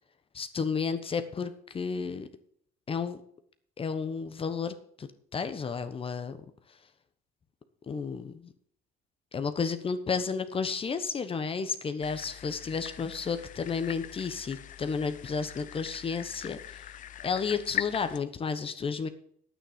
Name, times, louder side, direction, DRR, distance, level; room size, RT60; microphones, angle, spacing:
voice 1, 0.3-2.3 2.9-3.2 3.8-6.4 7.9-8.5 9.3-16.6 17.2-19.1, left 5 dB, 35° left, 10 dB, 1.1 m, -32 dB
sound 1, 12.0-18.2, left 11 dB, 50° left, 0.6 m, -41 dB
9.9 x 9.0 x 5.1 m, 0.62 s
cardioid pair, 110°, 17 cm